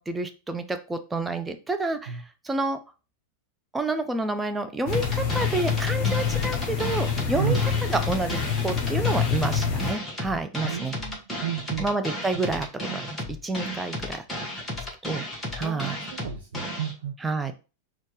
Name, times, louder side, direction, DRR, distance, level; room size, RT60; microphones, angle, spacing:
voice 1, 0.0-2.8 3.7-7.6 7.9-8.4 8.6-11.0 11.8-14.2 15.0-15.2 15.5-16.0 17.2-17.5, right 3 dB, 10° right, 7 dB, 0.5 m, -29 dB
sound 1, 4.9-9.9, left 7 dB, 40° left, 1.1 m, -26 dB
sound 2, 4.9-16.9, left 1 dB, 10° left, 1.5 m, -34 dB
voice 2, 10.6-11.9 15.6-17.1, right 9 dB, 60° right, 0 dB, 0.7 m, -32 dB
4.3 x 2.4 x 4.7 m, 0.32 s
figure-of-eight pair, 90°, 0 cm